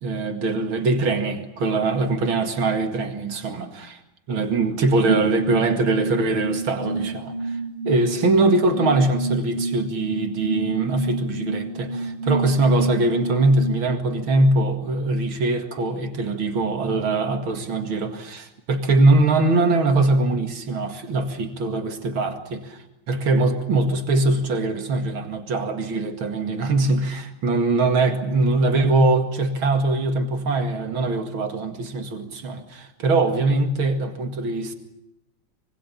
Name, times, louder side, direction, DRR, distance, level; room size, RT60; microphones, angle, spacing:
voice 1, 0.0-3.7 4.3-7.6 7.8-34.7, right 2 dB, 90° right, 6 dB, 3.0 m, -22 dB
sound 1, 5.1-13.9, right 2 dB, 25° right, 1.4 m, -29 dB
25.5 x 24.5 x 7.3 m, 0.85 s
omnidirectional pair, 2.2 m